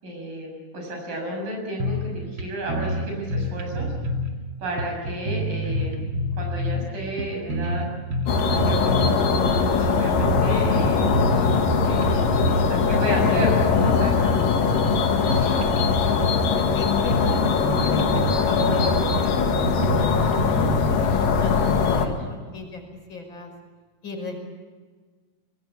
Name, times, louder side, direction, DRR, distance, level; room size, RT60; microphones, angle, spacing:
voice 1, 0.0-3.9 4.6-6.0 6.4-7.9 8.5-8.9 9.7-11.2 11.8-14.4 15.3-15.6 22.0-22.3, right 1 dB, 75° right, 1 dB, 8.7 m, -32 dB
sound 1, 1.8-2.1 2.4-2.5 2.7-4.3 4.8-6.9 7.2-9.1 9.5-9.6 10.0-11.7 12.0-12.7 12.9-14.0 14.4-16.5 16.8-16.9 17.1-17.4 17.7-21.0, equal, 40° right, 2.8 m, -27 dB
sound 2, 8.3-22.1, left 5 dB, 75° left, 3.7 m, -21 dB
voice 2, 12.5-13.4 14.2-14.3 15.4-16.2 16.5-17.4 17.8-22.8 23.1-23.5 24.0-24.4, left 2 dB, 35° left, 3 dB, 6.2 m, -39 dB
25.5 x 22.5 x 8.4 m, 1.4 s
omnidirectional pair, 3.9 m